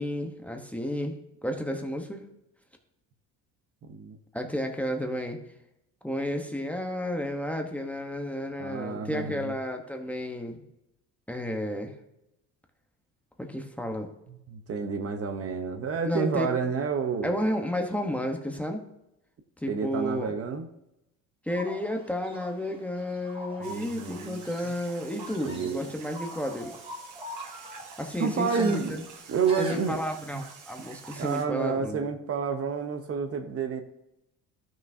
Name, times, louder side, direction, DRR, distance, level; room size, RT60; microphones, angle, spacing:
voice 1, 0.0-2.2 4.3-5.4 6.0-10.6 11.3-11.9 13.4-14.1 16.0-16.5 17.2-18.8 19.6-20.3 21.5-26.8 28.0-29.0 29.6-32.1, equal, 5° left, 3 dB, 1.0 m, -32 dB
voice 2, 8.6-9.5 14.3-17.3 19.7-20.6 23.6-24.4 25.4-25.9 28.2-28.9 29.3-30.0 30.3-30.4 31.2-33.8, right 5 dB, 40° right, 7 dB, 0.9 m, -29 dB
sound 1, 21.5-31.0, equal, 15° right, 1.5 m, -44 dB
sound 2, 23.6-31.4, right 5 dB, 60° right, 1.4 m, -48 dB
12.5 x 6.0 x 2.7 m, 0.86 s
cardioid pair, 110°, 34 cm